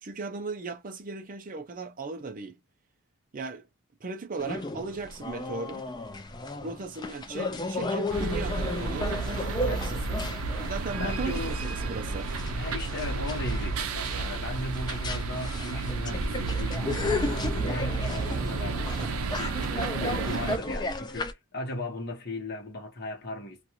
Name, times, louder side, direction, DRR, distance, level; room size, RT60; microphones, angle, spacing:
voice 1, 0.0-2.6 3.3-3.7 4.0-5.8 6.6-10.1 10.6-12.3, right 3 dB, 40° right, 0.5 m, -37 dB
sound 1, 4.4-21.3, left 2 dB, 20° left, 0.3 m, -34 dB
sound 2, 8.1-20.6, right 4 dB, 80° right, 0.5 m, -32 dB
voice 2, 9.7-10.2 11.0-11.6 12.5-23.6, left 2 dB, 50° left, 1.0 m, -37 dB
2.5 x 2.4 x 2.8 m
head